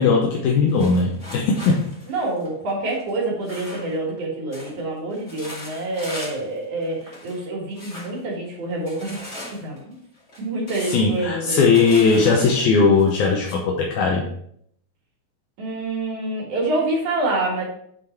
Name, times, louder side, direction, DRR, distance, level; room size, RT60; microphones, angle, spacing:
voice 1, 0.0-1.8 10.9-14.3, left 4 dB, 80° left, 0 dB, 2.2 m, -18 dB
sound 1, 0.7-4.2 4.5-4.8 5.1-6.5 6.8-7.4 7.7-8.2 8.8-13.6, left 1 dB, 25° left, 2.0 m, -39 dB
voice 2, 2.1-9.3 9.6-10.0 10.4-11.6 15.6-17.7, right 2 dB, 80° right, -3 dB, 3.4 m, -27 dB
8.7 x 4.0 x 4.4 m, 0.68 s
omnidirectional pair, 3.5 m